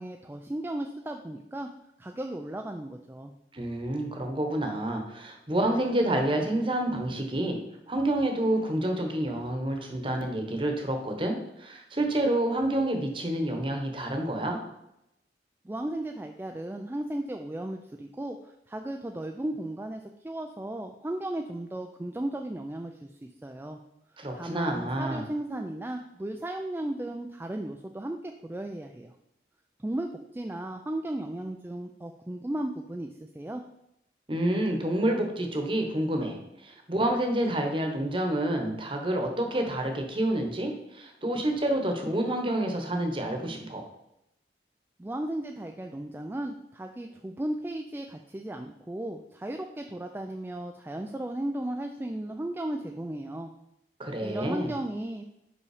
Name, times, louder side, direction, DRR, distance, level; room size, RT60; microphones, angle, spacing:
voice 1, 0.0-1.7 2.0-3.3 15.6-23.8 24.3-29.1 29.8-33.6 45.0-53.5 54.2-55.3, right 1 dB, 10° right, 4 dB, 0.3 m, -35 dB
voice 2, 3.5-7.6 7.9-14.6 24.2-25.2 34.3-43.8 54.0-54.7, right 1 dB, 30° right, 3 dB, 1.0 m, -28 dB
5.4 x 5.4 x 4.9 m, 0.83 s
head